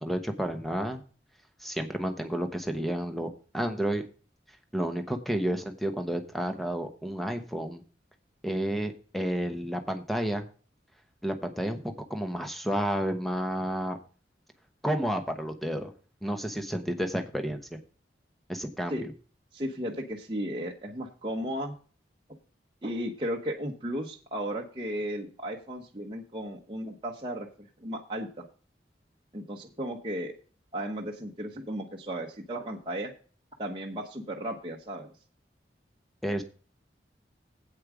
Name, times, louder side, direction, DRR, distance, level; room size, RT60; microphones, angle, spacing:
voice 1, 0.0-1.0 1.6-3.3 3.5-4.0 4.7-7.8 8.4-10.5 11.2-14.0 14.8-15.9 16.2-17.8 18.5-19.0 36.2-36.4, equal, ahead, 6 dB, 1.0 m, -31 dB
voice 2, 19.5-21.7 22.8-28.4 29.3-30.3 30.7-33.1 33.6-35.1, equal, 30° right, -1 dB, 1.0 m, -35 dB
8.6 x 8.5 x 4.9 m, 0.39 s
head